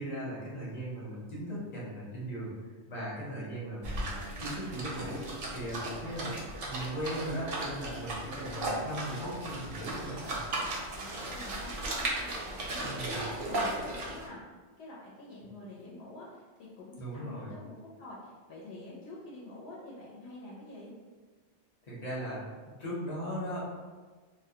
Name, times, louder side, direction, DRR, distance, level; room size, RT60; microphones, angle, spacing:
voice 1, 0.0-10.4 12.8-13.2 17.0-17.5 21.9-23.6, right 1 dB, 40° left, -7 dB, 0.8 m, -38 dB
sound 1, 3.8-14.3, right 2 dB, 60° right, 0.7 m, -36 dB
voice 2, 10.8-14.4 14.8-20.9, left 2 dB, 70° left, -6 dB, 0.8 m, -47 dB
2.2 x 2.1 x 2.7 m, 1.4 s
omnidirectional pair, 1.2 m